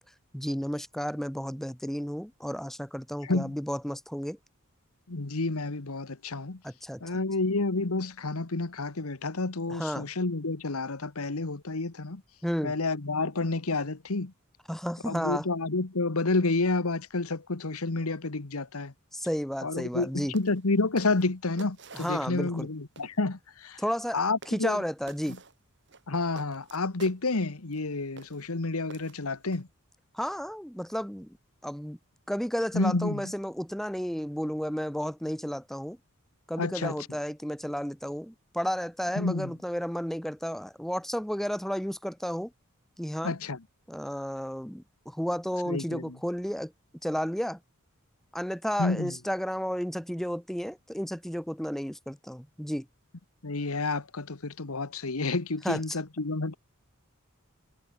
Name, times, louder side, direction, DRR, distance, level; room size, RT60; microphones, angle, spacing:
voice 1, 0.3-4.4 6.6-7.2 9.7-10.1 12.4-12.7 14.7-15.5 19.1-20.3 21.9-22.7 23.8-24.2 24.5-25.4 30.1-31.4 31.6-32.0 32.3-36.0 36.5-42.5 43.0-43.3 43.9-46.7 47.0-47.6 48.3-52.9 55.6-56.0, equal, ahead, 1.3 m, -32 dB
voice 2, 3.2-3.5 5.1-6.6 7.0-12.2 12.6-14.3 15.1-18.9 19.6-23.8 24.1-24.8 26.1-29.7 32.7-33.3 36.6-36.9 39.2-39.5 43.2-43.6 45.7-46.1 48.8-49.1 53.4-56.6, left 3 dB, 85° left, 1.4 m, -29 dB
sound 1, 19.9-20.1 20.3-20.6 21.0-22.6 23.0-23.2 24.0-24.1 24.4-24.8 25.1-25.5 25.9-27.2 27.7-27.8 28.2-28.5 28.9-29.6, right 3 dB, 55° right, 6.2 m, -49 dB
head